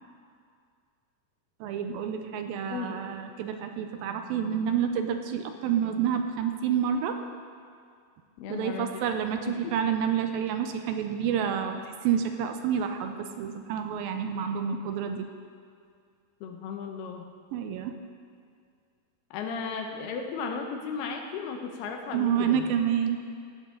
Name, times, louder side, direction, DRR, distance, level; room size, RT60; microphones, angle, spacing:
voice 1, 1.6-7.2 8.5-15.3 17.5-17.9 22.1-23.2, right 8 dB, 80° right, 6 dB, 2.4 m, -29 dB
voice 2, 2.7-3.1 8.4-9.1 9.5-9.8 16.4-17.3 19.3-22.7, left 5 dB, 90° left, 3 dB, 3.1 m, -35 dB
16.0 x 12.0 x 3.8 m, 2.2 s
omnidirectional pair, 4.4 m